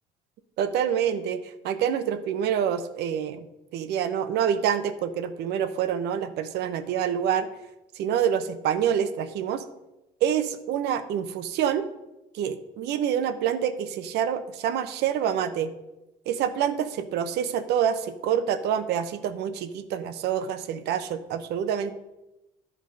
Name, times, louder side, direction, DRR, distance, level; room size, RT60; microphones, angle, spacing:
voice 1, 0.6-3.4 3.7-7.5 8.0-9.6 10.2-11.8 12.3-15.7 16.3-21.9, right 9 dB, 70° right, 10 dB, 0.9 m, -27 dB
11.0 x 5.0 x 5.2 m, 0.96 s
cardioid pair, 100°, 18 cm